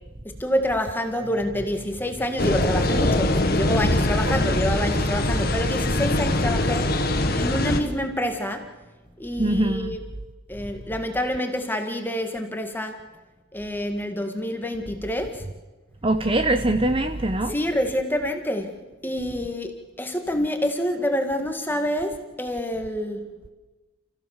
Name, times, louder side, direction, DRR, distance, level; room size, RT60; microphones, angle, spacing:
voice 1, 0.2-8.7 9.2-10.0 10.5-13.0 13.5-15.4 17.5-18.7 19.0-23.3, equal, 10° left, 5 dB, 1.9 m, -27 dB
sound 1, 2.4-7.8, left 1 dB, 45° left, 1.7 m, -22 dB
voice 2, 9.4-9.9 16.0-17.5, right 1 dB, 25° right, 8 dB, 0.8 m, -22 dB
30.0 x 15.5 x 7.3 m, 1.2 s
head